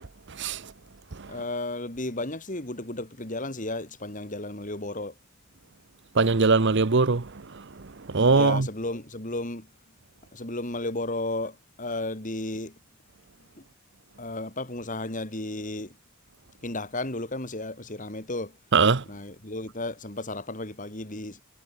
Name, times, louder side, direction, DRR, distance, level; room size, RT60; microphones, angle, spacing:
voice 1, 1.3-5.2 8.3-9.7 10.3-12.8 14.2-16.0 16.6-18.6 19.1-21.4, left 2 dB, 35° left, 3.6 m, -33 dB
voice 2, 6.2-7.2 8.1-8.6 18.7-19.0, right 4 dB, 55° right, 0.9 m, -20 dB
head